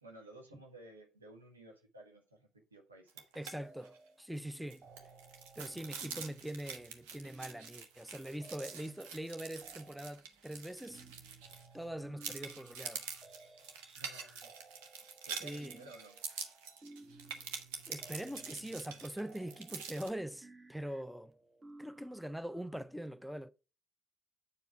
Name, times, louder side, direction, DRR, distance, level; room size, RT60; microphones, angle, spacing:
voice 1, 0.0-3.2 13.9-14.5 15.2-16.2, right 2 dB, 85° right, 1.3 m, -55 dB
sound 1, 3.1-3.5 3.8-4.0 4.4-11.8 12.2-20.1, right 6 dB, 70° right, 1.0 m, -46 dB
voice 2, 3.4-4.9 5.6-11.0 11.7-13.0 15.4-15.8 17.9-21.3 21.8-23.5, right 1 dB, ahead, 0.5 m, -43 dB
sound 2, 3.6-4.2 4.5-22.8, right 3 dB, 30° right, 1.1 m, -58 dB
8.5 x 4.8 x 4.5 m
figure-of-eight pair, 45°, 0 cm